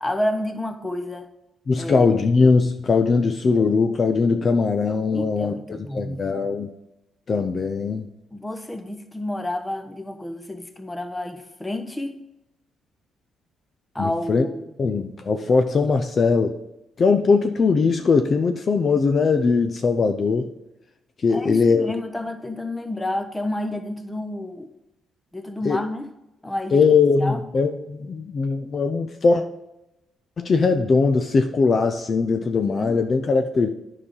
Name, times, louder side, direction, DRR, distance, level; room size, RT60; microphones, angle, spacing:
voice 1, 0.0-1.3 1.8-2.1 5.1-6.2 8.3-12.2 13.9-14.7 21.3-24.7 25.3-26.1 26.4-26.8 27.2-27.4 32.6-33.0, left 1 dB, 10° left, 8 dB, 1.0 m, -30 dB
voice 2, 1.7-6.7 7.3-8.1 14.0-14.5 14.8-16.6 17.0-20.5 21.2-21.8 25.6-25.8 26.7-29.4 30.4-33.7, left 4 dB, 45° left, 7 dB, 0.6 m, -20 dB
9.6 x 5.0 x 5.5 m, 0.91 s
cardioid pair, 90°, 0 cm